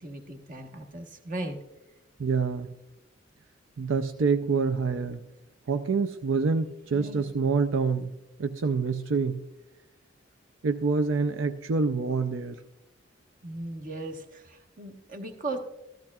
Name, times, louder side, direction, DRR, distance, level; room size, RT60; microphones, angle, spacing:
voice 1, 0.0-1.6 6.9-7.2 13.4-15.6, right 2 dB, 45° right, 5 dB, 1.2 m, -37 dB
voice 2, 2.2-2.7 3.8-5.2 5.7-8.1 8.4-9.4 10.6-12.6, right 4 dB, 80° right, 8 dB, 0.5 m, -26 dB
14.5 x 13.0 x 2.4 m, 0.93 s
head